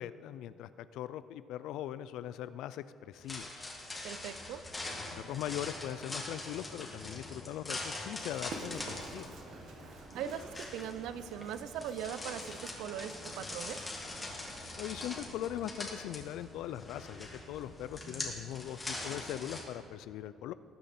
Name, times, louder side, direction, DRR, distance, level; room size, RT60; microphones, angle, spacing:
voice 1, 0.0-3.7 4.9-9.3 14.8-20.5, left 12 dB, 80° left, 14 dB, 0.3 m, -41 dB
sound 1, 3.1-19.6, left 2 dB, 15° left, 1.8 m, -43 dB
voice 2, 4.0-4.6 10.2-13.8, right 9 dB, 85° right, 13 dB, 0.5 m, -40 dB
Run, 8.1-18.7, right 2 dB, 60° right, 1.4 m, -51 dB
19.0 x 8.4 x 4.3 m, 2.8 s
cardioid pair, 160°, 0 cm